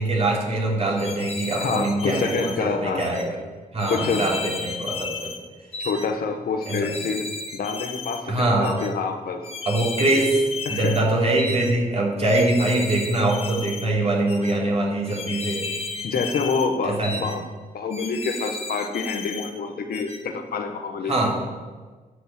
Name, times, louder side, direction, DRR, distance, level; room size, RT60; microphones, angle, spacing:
voice 1, 0.0-3.4 3.7-5.3 6.7-6.8 8.3-8.8 9.6-10.3 10.7-15.6 16.8-17.2 21.1-21.4, right 2 dB, 45° right, -2 dB, 3.3 m, -23 dB
sound 1, 1.0-2.6 3.0-3.2 3.8-5.4 5.7-6.1 6.6-8.2 8.6-8.9 9.4-11.0 11.4-11.7 12.3-13.9 14.3-14.5 15.1-16.7 17.0-17.4 17.9-19.5 19.9-20.2, left 4 dB, 40° left, 1.5 m, -34 dB
voice 2, 1.6-3.0 3.9-4.3 5.8-9.5 10.6-10.9 16.0-17.4 17.7-21.1, left 5 dB, 80° left, 5 dB, 1.4 m, -27 dB
11.0 x 7.1 x 8.9 m, 1.4 s
wide cardioid pair, 130°, 15 cm